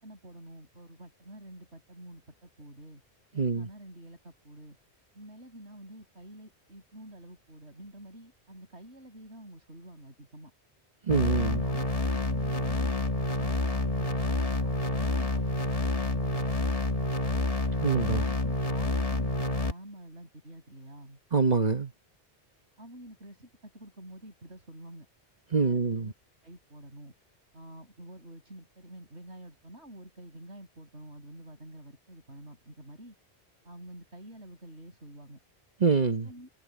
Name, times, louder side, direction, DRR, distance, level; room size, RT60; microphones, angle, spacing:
voice 1, 0.0-3.0 3.3-4.8 5.2-10.5 11.3-13.0 13.2-17.4 18.1-21.2 22.8-25.1 25.5-26.1 26.4-27.1 27.5-33.2 33.6-35.4 36.2-36.5, right 1 dB, 90° right, 6.9 m, -48 dB
voice 2, 3.4-3.7 11.1-11.6 17.8-18.2 21.3-21.9 25.5-26.1 35.8-36.3, right 4 dB, 40° right, 1.3 m, -25 dB
sound 1, 11.1-19.7, left 2 dB, 35° left, 1.9 m, -28 dB
omnidirectional pair, 1.1 m